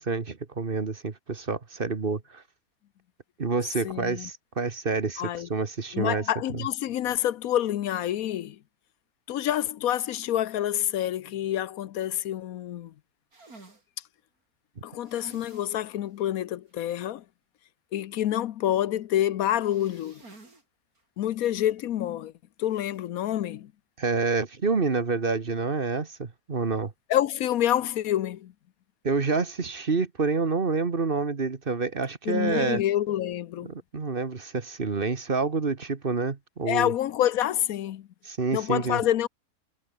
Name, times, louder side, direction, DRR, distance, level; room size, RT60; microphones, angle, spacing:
voice 1, 0.0-2.4 3.4-6.2 6.5-6.7 24.0-26.9 29.0-32.8 33.6-36.9 38.2-39.0, right 4 dB, 40° right, 1.6 m, -28 dB
voice 2, 3.8-4.3 5.2-5.5 5.9-8.6 9.3-12.9 14.8-17.2 17.9-20.2 21.2-22.3 22.6-23.7 27.1-28.5 32.3-33.7 36.7-38.1 38.5-39.3, left 12 dB, 80° left, 1.2 m, -27 dB
sound 1, 13.3-13.8 15.0-15.8 16.2-16.3 16.7-16.8 19.4-20.6 21.0-21.1 22.7-23.0, right 3 dB, 90° right, 5.2 m, -52 dB
omnidirectional pair, 1.5 m